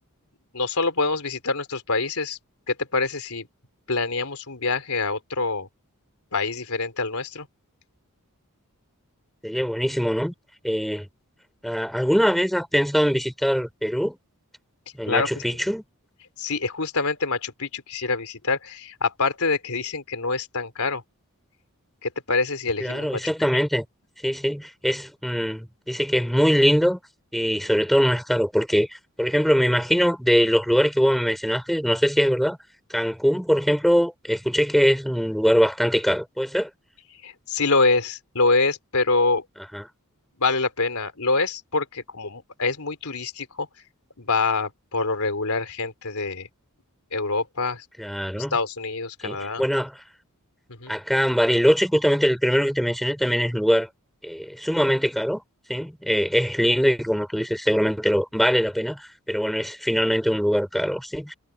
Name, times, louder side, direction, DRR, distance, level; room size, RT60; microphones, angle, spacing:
voice 1, 0.5-2.4 2.7-3.5 3.9-5.7 6.3-7.5 15.1-15.4 16.4-21.0 22.0-23.3 37.2-39.4 40.4-43.7 44.2-46.5 47.1-47.9 48.4-49.6 50.7-50.9, left 3 dB, 75° left, 3.8 m, -25 dB
voice 2, 9.4-10.3 10.6-11.1 11.6-14.2 15.0-15.8 22.8-23.9 24.2-27.0 27.3-28.9 29.2-32.6 32.9-36.7 39.7-39.8 48.0-48.5 49.2-49.9 50.9-53.9 54.2-55.4 55.7-61.3, equal, ahead, 3.7 m, -22 dB
head